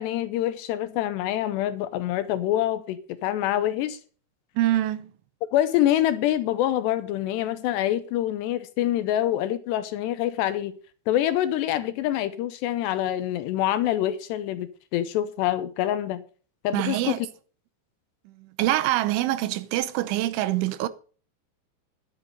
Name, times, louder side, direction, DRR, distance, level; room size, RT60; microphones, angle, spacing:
voice 1, 0.0-4.0 5.5-10.7 11.1-16.2 16.6-17.3, left 12 dB, 75° left, 2.7 m, -26 dB
voice 2, 4.6-5.1 16.7-17.2 18.3-20.9, right 15 dB, 85° right, 3.3 m, -25 dB
11.5 x 9.6 x 5.3 m
omnidirectional pair, 5.3 m